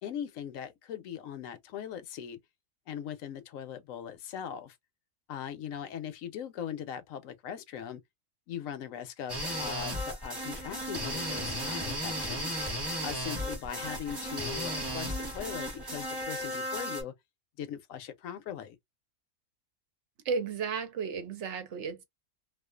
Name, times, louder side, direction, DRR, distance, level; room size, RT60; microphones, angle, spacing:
voice 1, 0.0-2.4 2.9-4.8 5.3-8.0 8.5-12.6 13.0-17.1 17.6-18.8, left 9 dB, 70° left, 0.9 m, -40 dB
sound 1, 9.3-17.0, equal, 20° right, 1.0 m, -35 dB
voice 2, 20.3-22.0, right 5 dB, 60° right, 0.8 m, -33 dB
2.4 x 2.3 x 2.2 m
omnidirectional pair, 1.6 m